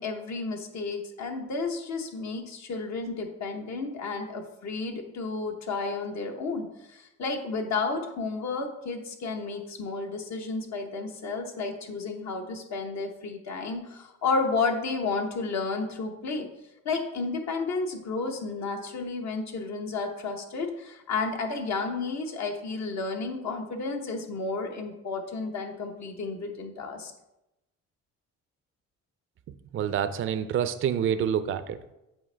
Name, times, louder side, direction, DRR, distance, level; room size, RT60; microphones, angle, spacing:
voice 1, 0.0-16.5 16.8-27.1, left 4 dB, 65° left, 3 dB, 1.0 m, -32 dB
voice 2, 29.7-31.9, right 8 dB, 45° right, 11 dB, 0.4 m, -27 dB
7.8 x 4.4 x 3.3 m, 0.93 s
cardioid pair, 90°, 30 cm